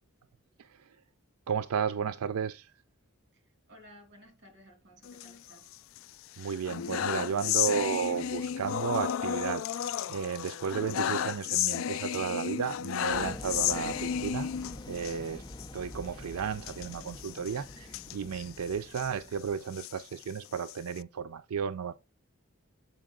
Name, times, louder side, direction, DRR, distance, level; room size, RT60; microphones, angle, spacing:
voice 1, 0.6-0.9 1.5-2.7 6.4-14.5 14.9-15.4 15.7-21.9, right 7 dB, 90° right, 0.4 m, -33 dB
voice 2, 3.3-5.7, equal, 55° right, 2.5 m, -56 dB
sound 1, 5.0-6.0 6.4-15.2 15.5-15.7 15.9-16.1 16.6-19.1 19.6-21.0, left 10 dB, 65° left, 0.3 m, -33 dB
sound 2, 13.1-19.8, left 1 dB, 20° left, 0.6 m, -45 dB
7.5 x 5.3 x 3.8 m
head